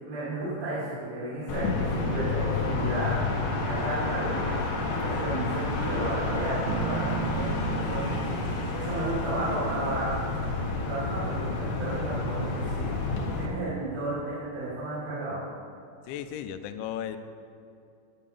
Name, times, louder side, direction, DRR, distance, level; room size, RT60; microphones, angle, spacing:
voice 1, 0.0-10.1 10.8-12.9 13.4-15.4, right 1 dB, 45° right, -11 dB, 4.1 m, -33 dB
sound 1, 1.5-13.5, left 3 dB, 60° left, 2.3 m, -30 dB
Bass guitar, 6.7-10.4, right 10 dB, 85° right, 3.0 m, -36 dB
voice 2, 16.1-17.2, left 10 dB, 85° left, 10 dB, 2.9 m, -35 dB
12.0 x 7.3 x 6.9 m, 2.6 s
omnidirectional pair, 5.4 m